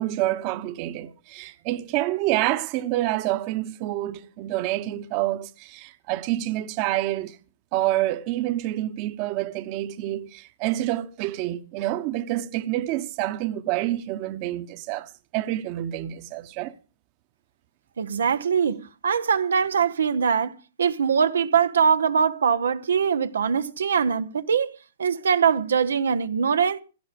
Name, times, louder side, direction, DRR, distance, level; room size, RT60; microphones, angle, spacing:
voice 1, 0.0-7.4 7.7-16.7, right 15 dB, 40° right, 1.0 m, -27 dB
voice 2, 18.0-20.5 20.8-24.7 25.0-26.8, right 6 dB, 85° right, 0.8 m, -22 dB
16.5 x 10.5 x 5.2 m
hypercardioid pair, 135°, 0 cm